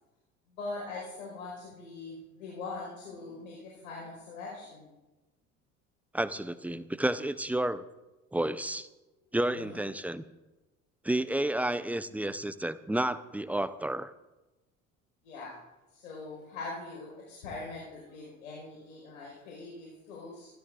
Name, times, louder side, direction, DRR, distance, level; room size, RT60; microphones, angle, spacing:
voice 1, 0.5-4.9 9.5-9.8 15.2-15.5 15.9-20.5, left 3 dB, 80° left, -4 dB, 4.7 m, -42 dB
voice 2, 6.1-7.8 8.3-8.9 9.3-10.2 11.0-14.1, right 1 dB, 5° right, 14 dB, 0.5 m, -31 dB
27.0 x 13.0 x 2.5 m, 1.1 s
hypercardioid pair, 65°, 42 cm